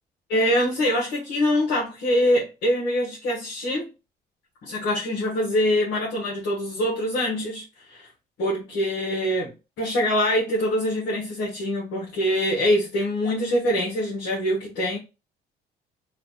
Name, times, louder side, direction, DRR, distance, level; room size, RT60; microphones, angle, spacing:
voice 1, 0.3-3.9 4.6-8.1 8.4-15.0, equal, 80° left, 1.3 m, -24 dB
3.3 x 2.5 x 3.9 m
cardioid pair, 110°, 17 cm